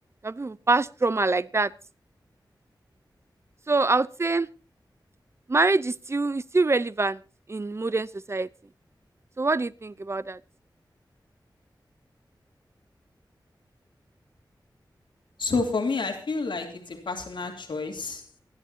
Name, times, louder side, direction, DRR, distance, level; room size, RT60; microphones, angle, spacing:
voice 1, 0.2-1.7 3.7-4.5 5.5-7.2 7.5-8.5 9.4-10.4, right 3 dB, 35° right, 18 dB, 0.7 m, -25 dB
voice 2, 15.4-16.7 17.1-18.2, left 4 dB, 90° left, 4 dB, 3.0 m, -29 dB
27.5 x 11.0 x 2.8 m, 0.32 s
wide cardioid pair, 90°, 8 cm